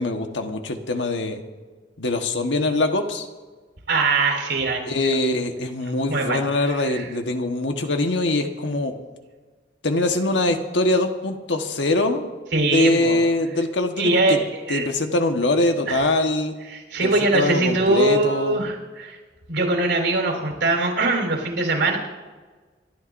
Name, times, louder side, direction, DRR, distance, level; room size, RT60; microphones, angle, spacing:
voice 1, 0.0-1.4 2.0-3.3 4.8-8.9 9.8-12.3 12.6-14.4 14.7-16.5 17.0-18.7, left 2 dB, 85° left, 4 dB, 1.4 m, -23 dB
voice 2, 3.9-5.1 6.1-6.4 6.9-7.0 12.5-13.2 14.0-14.4 14.7-14.9 15.9-16.0 16.7-19.2 19.5-22.0, right 2 dB, 85° right, 0 dB, 4.2 m, -22 dB
29.5 x 13.0 x 2.7 m, 1.4 s
head